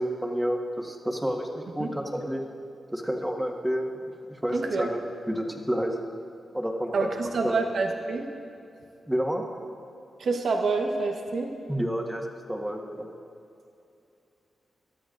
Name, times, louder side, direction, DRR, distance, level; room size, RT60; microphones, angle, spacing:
voice 1, 0.0-2.4 2.9-6.0 6.5-7.1 7.4-7.6 9.1-9.4 11.7-13.1, equal, 5° right, 1 dB, 1.7 m, -30 dB
voice 2, 4.5-4.9 6.9-8.3 10.2-11.5, right 3 dB, 70° right, 3 dB, 1.3 m, -27 dB
20.0 x 12.5 x 2.6 m, 2.7 s
cardioid pair, 50°, 0 cm